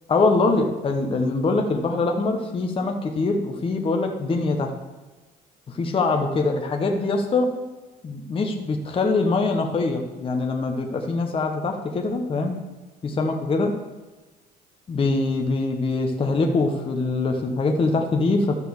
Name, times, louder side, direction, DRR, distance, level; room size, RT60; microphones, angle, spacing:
voice 1, 0.1-4.7 5.7-7.5 8.0-12.6 13.0-13.8 14.9-18.6, left 3 dB, 30° left, 3 dB, 1.1 m, -23 dB
12.5 x 4.3 x 7.1 m, 1.2 s
cardioid pair, 110°, 17 cm